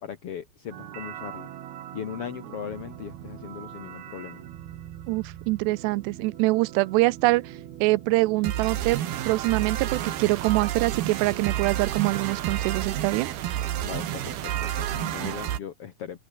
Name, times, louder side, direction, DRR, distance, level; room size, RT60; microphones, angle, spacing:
voice 1, 0.0-1.5 1.9-4.4 13.8-16.2, left 9 dB, 60° left, 1.5 m, -38 dB
sound 1, 0.7-15.6, right 11 dB, 65° right, 3.5 m, -33 dB
voice 2, 5.1-7.5 7.8-13.3 15.2-15.3, right 21 dB, 85° right, 2.7 m, -24 dB
omnidirectional pair, 4.9 m